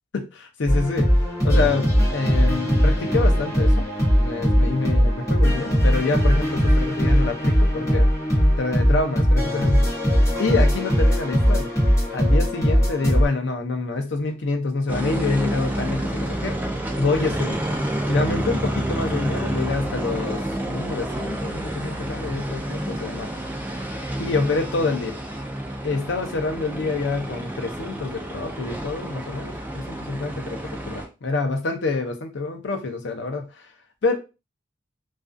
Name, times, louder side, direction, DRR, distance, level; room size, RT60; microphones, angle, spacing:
voice 1, 0.1-1.1 1.4-3.9 4.2-8.1 8.6-9.9 10.4-11.7 12.1-16.6 17.0-17.6 18.1-20.4 20.7-23.3 24.2-25.2 25.8-30.6 30.9-33.5 34.0-34.2, left 3 dB, 65° left, 5 dB, 0.5 m, -27 dB
sound 1, 0.7-13.3, equal, 15° left, 1.0 m, -19 dB
sound 2, 14.9-31.1, right 1 dB, 10° right, 0.4 m, -29 dB
2.4 x 2.3 x 2.4 m, 0.29 s
head